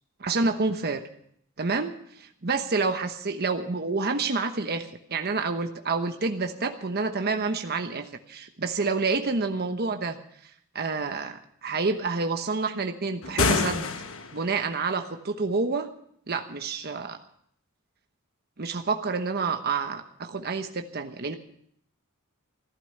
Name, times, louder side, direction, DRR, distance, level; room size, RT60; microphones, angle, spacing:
voice 1, 0.2-1.0 1.6-1.9 2.4-10.2 10.7-13.9 14.3-15.9 16.3-17.2 18.6-21.3, right 4 dB, 45° right, 6 dB, 1.0 m, -28 dB
sound 1, 13.2-14.5, left 4 dB, 65° left, 1.3 m, -26 dB
15.0 x 12.0 x 6.6 m, 0.67 s
head